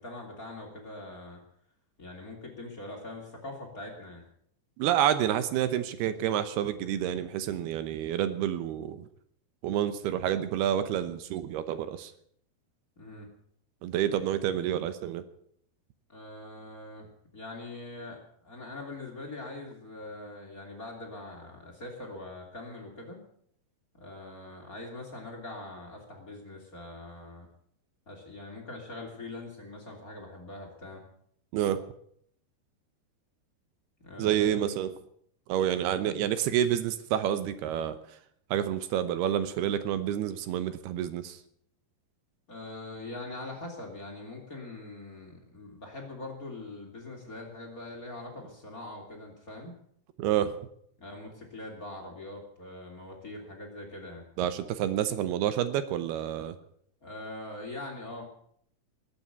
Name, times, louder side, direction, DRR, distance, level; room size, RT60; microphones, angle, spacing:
voice 1, 0.0-1.4 2.0-4.2 13.0-13.3 16.1-17.1 17.3-23.2 23.9-27.5 28.1-31.0 34.0-34.8 42.5-49.7 51.0-54.2 57.0-58.2, left 2 dB, 25° left, 2 dB, 3.1 m, -42 dB
voice 2, 4.8-9.1 9.6-12.1 13.8-15.2 31.5-31.8 34.2-34.9 35.5-38.0 38.5-41.4 50.2-50.5 54.4-56.6, right 10 dB, 80° right, 12 dB, 2.9 m, -28 dB
20.0 x 8.8 x 8.0 m, 0.66 s
omnidirectional pair, 4.6 m